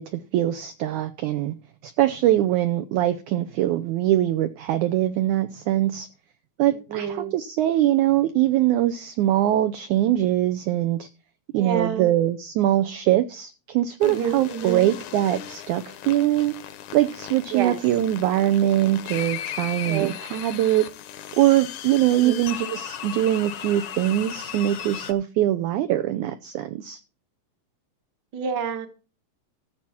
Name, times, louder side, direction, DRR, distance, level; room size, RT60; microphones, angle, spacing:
voice 1, 0.0-1.6 1.8-6.1 6.6-11.1 11.5-16.5 16.9-20.9 21.4-27.0, right 13 dB, 75° right, 1.8 m, -22 dB
voice 2, 6.7-7.3 11.5-12.2 14.0-14.9 17.5-17.8 19.9-20.2 22.2-22.4 28.3-28.9, right 7 dB, 45° right, 1.4 m, -28 dB
sound 1, 14.0-25.1, left 10 dB, 70° left, 2.2 m, -37 dB
14.5 x 7.4 x 4.4 m
omnidirectional pair, 4.1 m